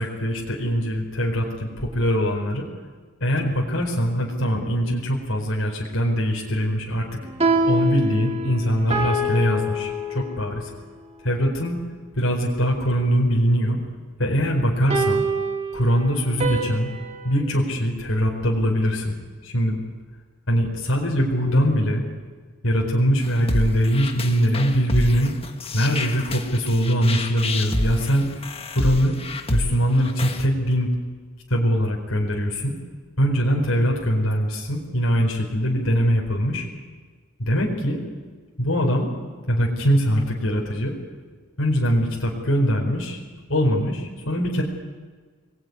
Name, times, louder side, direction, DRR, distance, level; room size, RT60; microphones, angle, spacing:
voice 1, 0.0-2.6 3.2-7.2 7.7-10.7 11.2-11.8 12.1-13.8 14.2-15.2 15.7-16.9 17.2-19.1 19.4-19.8 20.5-22.0 22.6-25.3 25.7-28.3 28.7-29.1 29.5-30.9 31.5-32.7 33.2-36.7 37.4-38.0 38.6-39.1 39.5-41.0 41.6-43.2 43.5-44.6, equal, 75° left, -1 dB, 4.5 m, -22 dB
sound 1, 7.2-10.7 14.9-17.4, right 1 dB, 30° right, 3.0 m, -25 dB
sound 2, 23.2-30.5, left 2 dB, 25° left, 1.7 m, -29 dB
26.0 x 20.5 x 9.7 m, 1.5 s
head